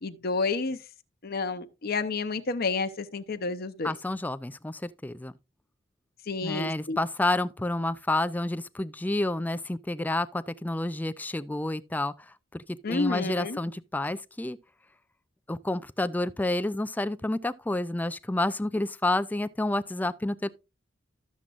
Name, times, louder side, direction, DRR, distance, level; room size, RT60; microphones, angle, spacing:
voice 1, 0.0-0.8 1.2-3.9 6.3-7.0 12.8-13.6, left 4 dB, 50° left, 0.7 m, -30 dB
voice 2, 3.8-5.3 6.4-14.6 15.5-20.5, left 2 dB, 10° left, 0.4 m, -29 dB
12.0 x 7.2 x 2.5 m
head